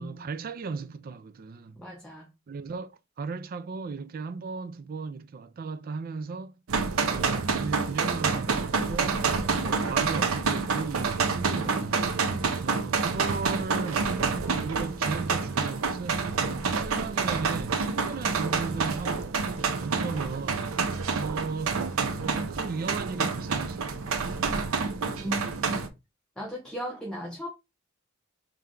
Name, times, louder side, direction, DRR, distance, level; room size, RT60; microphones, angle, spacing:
voice 1, 0.0-1.8 2.5-6.5 7.0-9.3 9.6-12.1 12.6-16.3 16.7-20.7 21.2-21.9 22.2-24.3, right 4 dB, 45° right, 0.4 m, -36 dB
voice 2, 1.8-2.3 25.2-25.8 26.4-27.5, equal, 5° left, 0.7 m, -37 dB
sound 1, 6.7-25.9, right 4 dB, 90° right, 0.6 m, -28 dB
3.4 x 3.1 x 3.7 m
head